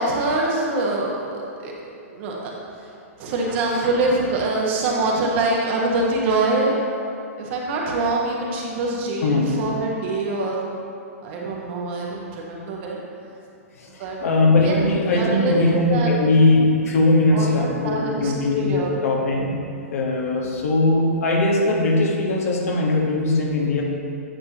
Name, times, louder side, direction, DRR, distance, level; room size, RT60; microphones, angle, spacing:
voice 1, 0.0-2.5 3.2-6.8 7.4-10.6 11.2-13.0 14.0-14.2 14.6-14.8 15.1-15.6 15.9-16.3 17.3-18.9, right 2 dB, 50° right, -2 dB, 1.6 m, -24 dB
voice 2, 13.8-19.5 19.9-23.8, left 2 dB, 70° left, -1 dB, 1.6 m, -20 dB
9.8 x 6.3 x 3.1 m, 2.6 s
hypercardioid pair, 125°, 8 cm